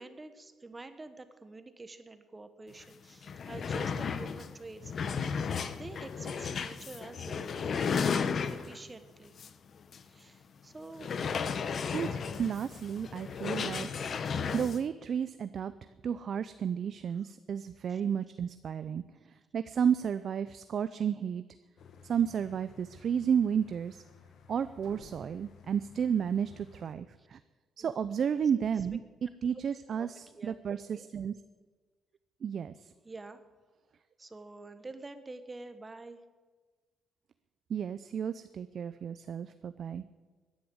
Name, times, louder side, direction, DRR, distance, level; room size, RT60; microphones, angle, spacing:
voice 1, 0.0-4.9 5.4-8.2 8.5-9.3 10.1-11.1 17.9-18.0 27.2-27.3 27.8-27.9 30.0-30.6 30.9-31.1 33.0-33.5 34.2-36.2, right 3 dB, 25° right, 10 dB, 1.3 m, -48 dB
Chair moving on a wood floor, 2.8-2.9 3.2-8.9 9.4-9.5 9.9-10.0 11.0-14.8, left 6 dB, 50° left, 0.9 m, -34 dB
voice 2, 11.9-13.9 14.5-15.7 16.0-21.4 22.0-24.0 24.5-27.4 27.8-29.0 29.4-31.3 32.4-32.9 37.7-40.0, right 7 dB, 55° right, 13 dB, 0.5 m, -32 dB
sound 1, 21.8-26.9, left 6 dB, 70° left, 1.7 m, -56 dB
sound 2, 24.8-26.7, right 3 dB, 75° right, 2.5 m, -57 dB
16.5 x 10.5 x 7.8 m, 1.4 s
cardioid pair, 90°, 0 cm